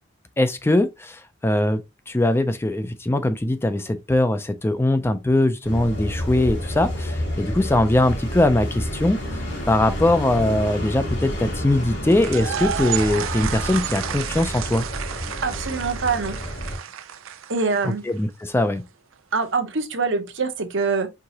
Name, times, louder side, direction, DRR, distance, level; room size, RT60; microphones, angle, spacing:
voice 1, 0.4-14.8 17.8-18.8, left 1 dB, 10° left, 0.4 m, -21 dB
sound 1, 5.6-16.8, equal, 60° left, 2.9 m, -30 dB
sound 2, 12.1-18.1, right 9 dB, 80° right, 0.5 m, -31 dB
voice 2, 15.4-16.4 17.5-18.0 19.3-21.1, right 4 dB, 65° right, 0.9 m, -24 dB
4.7 x 3.6 x 2.8 m
head